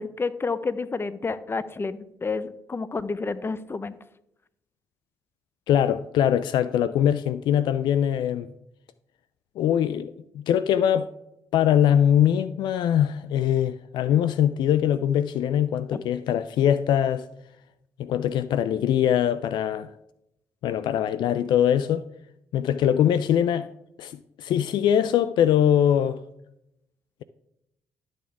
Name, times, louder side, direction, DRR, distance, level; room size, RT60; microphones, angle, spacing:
voice 1, 0.0-4.0, left 4 dB, 30° left, 0.7 m, -30 dB
voice 2, 5.7-8.5 9.6-11.1 11.5-17.3 18.0-19.9 20.6-22.0 22.5-23.7 24.0-26.2, left 10 dB, 70° left, 0.4 m, -22 dB
12.0 x 6.4 x 3.5 m
hypercardioid pair, 50°, 8 cm